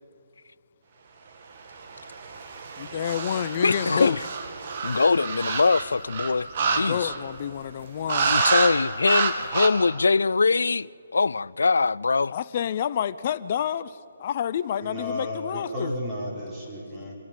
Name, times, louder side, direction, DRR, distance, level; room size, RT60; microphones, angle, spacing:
sound 1, 1.8-7.4 8.1-8.7 9.0-9.7, right 4 dB, 45° right, 2.1 m, -28 dB
voice 1, 2.8-4.2 6.6-8.4 12.3-15.9, left 9 dB, 40° left, 0.7 m, -29 dB
voice 2, 3.6-4.2 4.8-6.5 6.8-7.1 8.2-12.4, left 4 dB, 80° left, 0.4 m, -22 dB
voice 3, 14.8-17.1, left 1 dB, 15° right, 5.0 m, -33 dB
26.0 x 11.0 x 9.3 m
hypercardioid pair, 155°, 0 cm